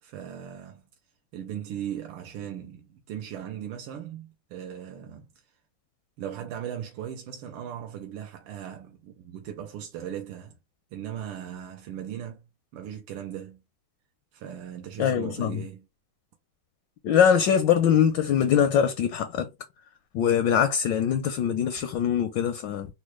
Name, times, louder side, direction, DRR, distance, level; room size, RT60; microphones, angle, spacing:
voice 1, 0.0-0.9 1.3-5.3 6.2-10.6 10.9-12.4 12.7-13.6 14.3-15.8, right 10 dB, 85° right, 1.5 m, -38 dB
voice 2, 15.0-15.6 17.0-19.5 20.1-22.9, left 8 dB, 75° left, 1.0 m, -23 dB
4.2 x 2.1 x 3.0 m
omnidirectional pair, 2.4 m